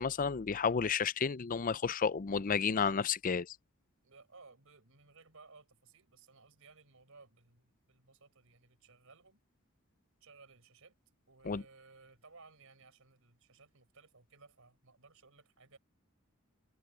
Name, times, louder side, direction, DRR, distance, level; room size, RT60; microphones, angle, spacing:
voice 1, 0.0-3.6 11.5-11.6, left 6 dB, 40° left, 0.5 m, -31 dB
voice 2, 4.0-9.4 10.2-11.0 11.3-15.8, right 4 dB, 75° right, 4.8 m, -60 dB
head